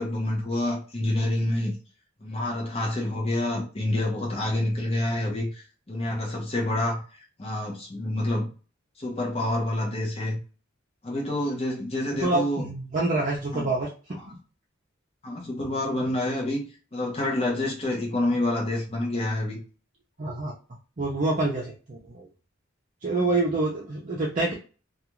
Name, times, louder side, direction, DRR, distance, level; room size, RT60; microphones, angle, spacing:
voice 1, 0.0-1.7 2.2-7.0 7.4-8.5 9.0-10.4 11.0-12.7 13.5-13.7 14.1-14.3 15.2-16.7 16.9-19.6 23.1-23.3, left 1 dB, 30° left, 0.8 m, -28 dB
voice 2, 12.2-13.9 20.2-20.5 21.0-22.3 23.0-24.5, right 2 dB, 40° right, 0.6 m, -26 dB
2.4 x 2.4 x 2.9 m
head